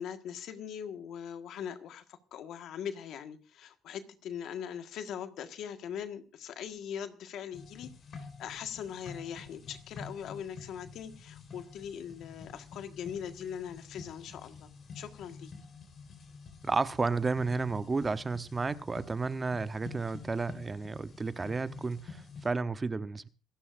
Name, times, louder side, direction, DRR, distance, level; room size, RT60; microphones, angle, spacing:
voice 1, 0.0-14.7 14.9-15.5, left 8 dB, 70° left, 1.6 m, -41 dB
sound 1, 7.5-22.5, left 4 dB, 50° left, 4.6 m, -49 dB
voice 2, 16.6-23.3, right 4 dB, 25° right, 0.9 m, -32 dB
27.0 x 11.5 x 2.6 m
supercardioid pair, 75°, 0 cm